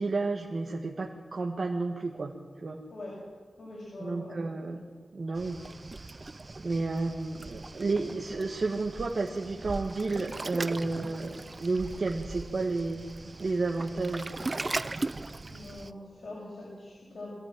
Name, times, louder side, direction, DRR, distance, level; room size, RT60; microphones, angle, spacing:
voice 1, 0.0-2.3 2.6-2.8 4.0-4.8 5.1-5.6 6.6-13.1 13.4-14.3, right 3 dB, 45° right, -1 dB, 1.5 m, -31 dB
voice 2, 3.6-4.4 4.7-4.8 15.5-17.3, left 2 dB, 60° left, -4 dB, 7.4 m, -43 dB
Waves surf, 5.4-15.9, right 2 dB, 30° right, 0.6 m, -39 dB
23.5 x 15.0 x 9.2 m, 1.5 s
wide cardioid pair, 155°, 0 cm